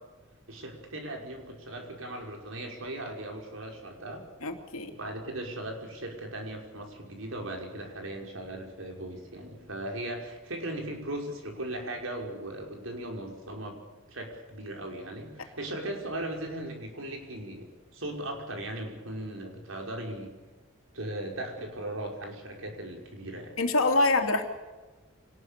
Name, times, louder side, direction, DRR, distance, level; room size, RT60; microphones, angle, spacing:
voice 1, 0.5-4.3 4.9-13.8 14.1-20.3 20.9-23.5, right 1 dB, 70° right, 2 dB, 5.8 m, -38 dB
voice 2, 4.4-4.9 23.6-24.5, left 2 dB, 90° left, 4 dB, 3.0 m, -25 dB
26.0 x 19.5 x 6.8 m, 1.2 s
head